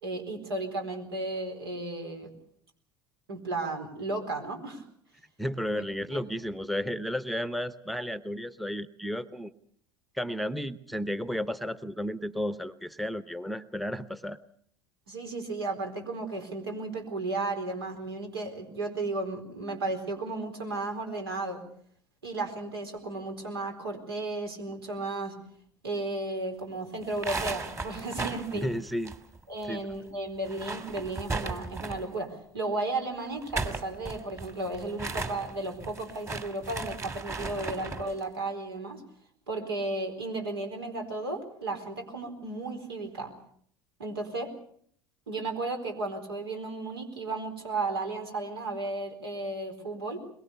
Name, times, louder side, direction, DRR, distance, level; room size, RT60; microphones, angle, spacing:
voice 1, 0.0-2.3 3.3-4.8 5.7-5.8 6.1-6.2 15.1-21.6 22.2-25.4 25.8-28.7 29.5-39.0 39.5-43.3 44.0-44.5 45.3-50.2, right 2 dB, 80° right, 4 dB, 4.2 m, -34 dB
voice 2, 5.4-9.5 10.1-14.4 28.5-29.2 29.7-29.8, equal, ahead, 15 dB, 0.9 m, -33 dB
sound 1, 27.0-29.7 29.9-30.0 30.4-32.2 33.3-38.1, right 3 dB, 20° right, 2.4 m, -36 dB
22.5 x 22.0 x 6.8 m, 0.63 s
hypercardioid pair, 75°, 12 cm